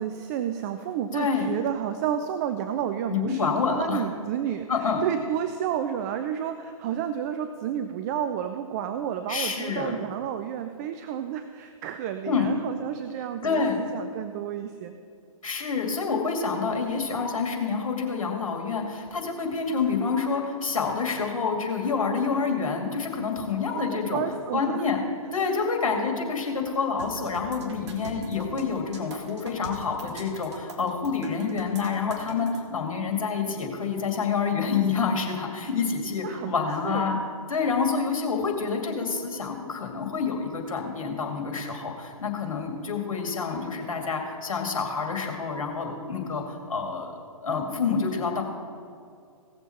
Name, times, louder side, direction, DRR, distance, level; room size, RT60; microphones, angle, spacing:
voice 1, 0.0-14.9 23.7-24.8 36.2-37.2, right 9 dB, 30° right, 9 dB, 0.5 m, -31 dB
voice 2, 1.1-1.5 3.1-4.0 4.7-5.0 9.3-10.0 12.3-12.5 13.4-13.8 15.4-24.2 24.5-25.0 25.3-37.2 37.5-47.1 47.4-48.4, left 5 dB, 65° left, 3 dB, 2.4 m, -28 dB
sound 1, 27.0-32.6, right 2 dB, 50° right, 1.9 m, -42 dB
17.5 x 7.1 x 4.4 m, 2.3 s
figure-of-eight pair, 125°, 18 cm